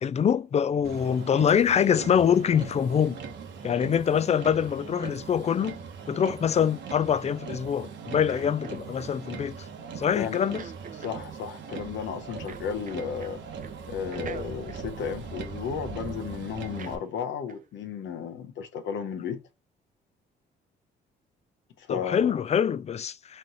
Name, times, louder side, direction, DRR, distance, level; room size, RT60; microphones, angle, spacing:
voice 1, 0.0-3.2 3.6-5.8 6.1-9.6 10.0-10.6 21.9-23.4, left 8 dB, 35° left, 0.4 m, -24 dB
Motor vehicle (road), 0.8-17.0, right 6 dB, 65° right, 1.1 m, -40 dB
sound 1, 8.3-9.1 10.3-11.2 12.5-13.4 13.6-13.8 14.1-15.9 16.8-17.0 17.5-17.7, right 7 dB, 45° right, 0.5 m, -44 dB
voice 2, 10.9-13.4 13.9-19.4 21.8-22.4, left 7 dB, 70° left, 0.8 m, -34 dB
4.2 x 3.2 x 3.9 m
cardioid pair, 90°, 20 cm